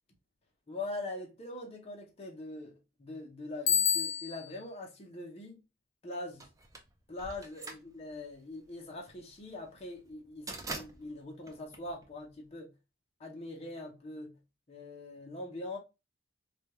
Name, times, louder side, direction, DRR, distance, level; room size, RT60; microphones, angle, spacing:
voice 1, 0.7-5.6 6.0-6.5 7.1-12.7 13.2-14.3 14.7-15.8, left 2 dB, 30° left, 0.6 m, -42 dB
Bicycle bell, 3.7-4.6, left 8 dB, 75° left, 0.5 m, -28 dB
sound 1, 6.4-12.5, right 2 dB, 15° right, 0.4 m, -45 dB
3.3 x 2.2 x 2.8 m
head